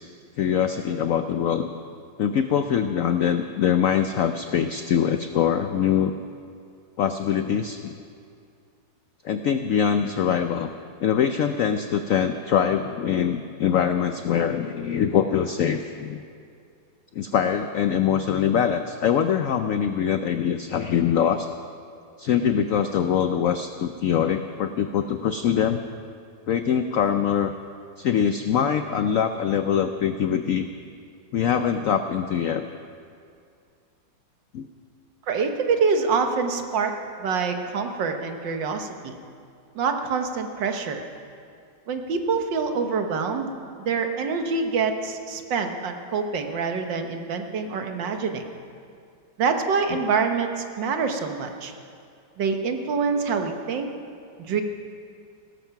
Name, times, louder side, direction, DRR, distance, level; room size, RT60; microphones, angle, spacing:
voice 1, 0.4-1.7 2.2-6.1 7.0-8.0 9.2-10.7 11.0-16.2 17.2-21.5 22.2-25.8 26.5-27.5 28.0-30.7 31.3-32.7 34.5-34.7 49.9-50.0, left 8 dB, 85° left, 8 dB, 0.7 m, -23 dB
voice 2, 35.3-36.9 37.2-39.2 39.8-41.0 41.9-43.5 43.8-48.4 49.4-51.7 52.4-53.9 54.4-54.6, right 5 dB, 70° right, 5 dB, 1.8 m, -26 dB
17.5 x 13.5 x 5.9 m, 2.3 s
omnidirectional pair, 2.1 m